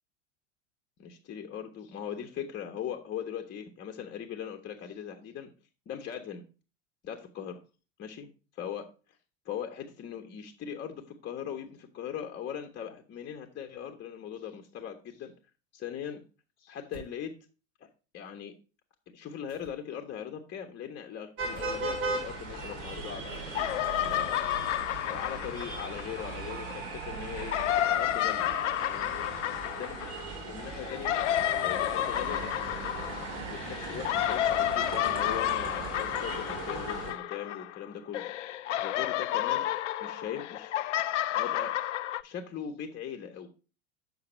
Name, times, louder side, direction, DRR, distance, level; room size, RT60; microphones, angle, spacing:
voice 1, 1.0-5.5 5.9-6.4 7.0-7.6 8.0-8.9 9.4-15.3 15.7-16.2 16.6-17.3 17.8-18.5 19.1-24.5 25.1-28.5 28.9-29.3 29.8-30.2 30.5-31.2 31.6-32.6 33.5-38.3 38.8-39.7 40.0-40.7 41.3-41.8 42.2-43.5, left 8 dB, 30° left, 3 dB, 1.2 m, -40 dB
sound 1, 16.9-17.2 19.5-20.0 21.5-21.8 24.1-24.6, right 5 dB, 65° right, 3.9 m, -51 dB
sound 2, 21.4-37.1, right 3 dB, 40° right, 3.2 m, -38 dB
sound 3, 22.5-23.2 23.5-26.7 27.3-37.9 38.1-42.2, left 13 dB, 70° left, 0.6 m, -31 dB
7.8 x 5.8 x 4.3 m, 0.34 s
figure-of-eight pair, 85°, 37 cm